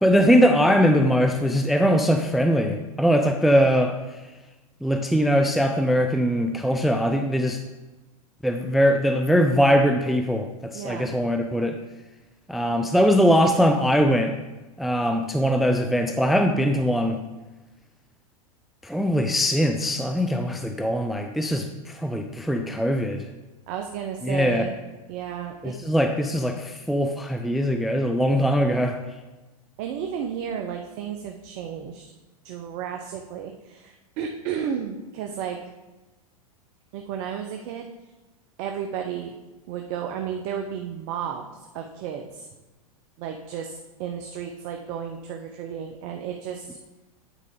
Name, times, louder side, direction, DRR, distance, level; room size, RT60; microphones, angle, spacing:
voice 1, 0.0-3.9 4.8-7.6 8.4-11.8 12.5-14.3 14.8-17.2 18.8-23.3 24.2-24.7 25.6-29.0, equal, ahead, 5 dB, 0.3 m, -21 dB
voice 2, 10.7-11.1 23.7-24.8 25.1-25.7 29.8-32.0 32.4-35.6 36.9-37.9 38.6-39.3 39.7-42.5 43.2-46.8, right 8 dB, 45° right, 4 dB, 0.7 m, -33 dB
9.1 x 4.6 x 3.7 m, 1.1 s
hypercardioid pair, 100°, 19 cm